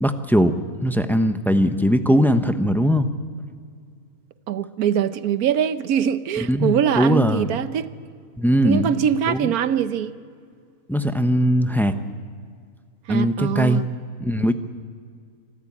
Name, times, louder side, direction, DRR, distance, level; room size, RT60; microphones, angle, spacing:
voice 1, 0.0-3.1 6.5-7.4 8.4-8.9 9.3-9.5 10.9-11.9 13.1-13.8 14.2-14.5, equal, ahead, 0.6 m, -20 dB
voice 2, 4.5-7.9 8.6-10.1 13.1-13.8, right 9 dB, 85° right, 1.3 m, -22 dB
26.0 x 13.5 x 8.7 m
omnidirectional pair, 1.5 m